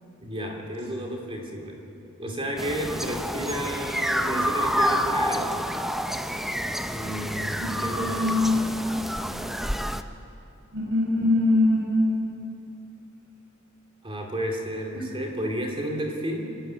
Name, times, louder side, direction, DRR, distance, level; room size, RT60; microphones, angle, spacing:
voice 1, 0.2-1.9 2.2-5.6 6.9-8.3 14.0-16.6, right 1 dB, 25° right, 1 dB, 2.8 m, -32 dB
sound 1, 2.6-10.0, equal, ahead, 0.6 m, -28 dB
voice 2, 7.6-8.6 10.7-12.1, left 2 dB, 65° right, -2 dB, 4.9 m, -23 dB
25.5 x 12.5 x 9.2 m, 2.8 s
head